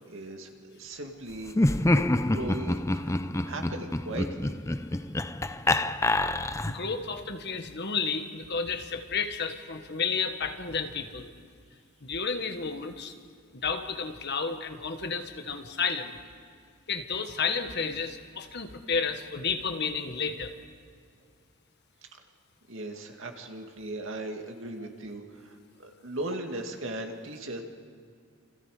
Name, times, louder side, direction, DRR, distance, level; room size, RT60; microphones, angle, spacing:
voice 1, 0.1-1.5 2.0-4.5 22.1-22.2 22.7-27.6, right 2 dB, 60° right, 3 dB, 2.3 m, -38 dB
Laughter, 1.5-6.9, left 1 dB, 15° left, 0.5 m, -27 dB
voice 2, 6.7-11.3 12.0-13.1 13.6-16.2 16.9-20.5, left 5 dB, 50° left, 7 dB, 1.5 m, -31 dB
29.5 x 27.0 x 5.0 m, 2.2 s
head